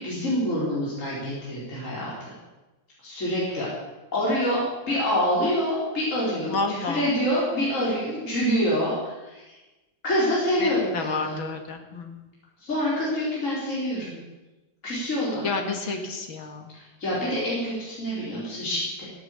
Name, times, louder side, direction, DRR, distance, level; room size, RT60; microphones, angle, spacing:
voice 1, 0.0-2.3 3.0-3.7 4.1-9.5 10.0-11.4 12.6-14.2 14.8-15.5 16.7-19.0, equal, 40° left, -7 dB, 4.9 m, -26 dB
voice 2, 6.5-7.1 10.6-12.3 15.4-16.7, left 4 dB, 90° left, 4 dB, 2.8 m, -30 dB
16.5 x 9.7 x 8.4 m, 1.1 s
omnidirectional pair, 2.1 m